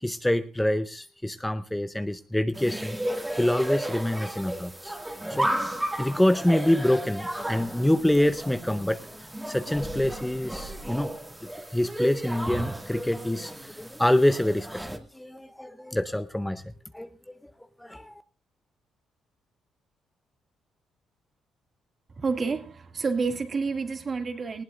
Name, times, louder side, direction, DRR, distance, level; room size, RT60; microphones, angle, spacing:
voice 1, 0.0-11.1 11.7-17.1 17.4-17.5 17.8-18.1, left 1 dB, 5° left, 0.7 m, -26 dB
sound 1, 2.5-15.0, right 1 dB, 10° right, 2.2 m, -34 dB
voice 2, 22.2-24.6, right 4 dB, 40° right, 2.1 m, -29 dB
19.0 x 16.5 x 2.5 m
cardioid pair, 90°, 0 cm